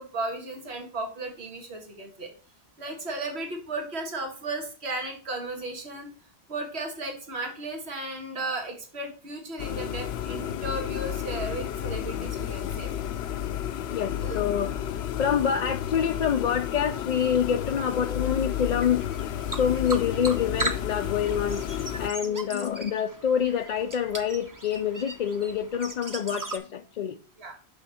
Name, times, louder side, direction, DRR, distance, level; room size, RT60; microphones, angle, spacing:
voice 1, 0.0-2.3 2.8-6.1 6.5-12.9 14.2-14.4 17.5-17.8 22.2-22.4 27.4-27.5, right 2 dB, 75° right, 1.8 m, -35 dB
sound 1, 9.6-22.1, left 10 dB, 75° left, 0.8 m, -32 dB
voice 2, 13.9-27.2, left 8 dB, 55° left, 0.5 m, -27 dB
sound 2, 17.7-26.6, right 2 dB, 20° right, 0.8 m, -38 dB
6.4 x 5.8 x 4.2 m
omnidirectional pair, 1.1 m